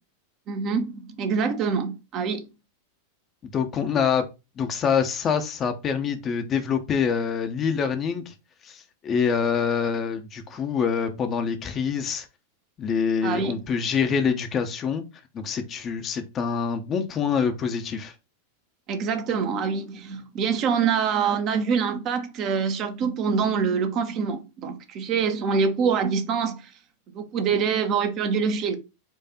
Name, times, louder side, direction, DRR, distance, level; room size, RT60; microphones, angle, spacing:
voice 1, 0.5-2.5 13.2-13.6 18.9-26.6 27.1-28.8, right 6 dB, 35° right, 0.8 m, -25 dB
voice 2, 3.5-4.2 4.6-8.3 8.6-12.3 12.8-15.0 15.3-18.1, left 6 dB, 25° left, 0.7 m, -25 dB
4.5 x 2.5 x 4.2 m
figure-of-eight pair, 90°, 0 cm